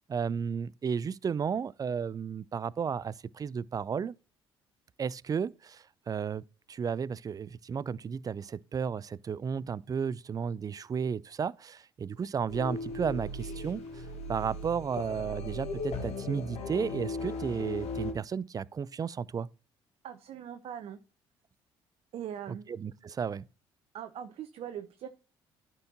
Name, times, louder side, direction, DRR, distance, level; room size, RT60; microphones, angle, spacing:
voice 1, 0.1-4.2 5.0-19.5 22.5-23.5, right 6 dB, 30° right, 0.4 m, -33 dB
sound 1, 12.5-18.1, left 2 dB, 60° left, 1.8 m, -37 dB
voice 2, 20.0-21.0 22.1-22.7 23.9-25.1, right 9 dB, 55° right, 0.7 m, -41 dB
13.0 x 4.5 x 2.8 m
hypercardioid pair, 50°, 12 cm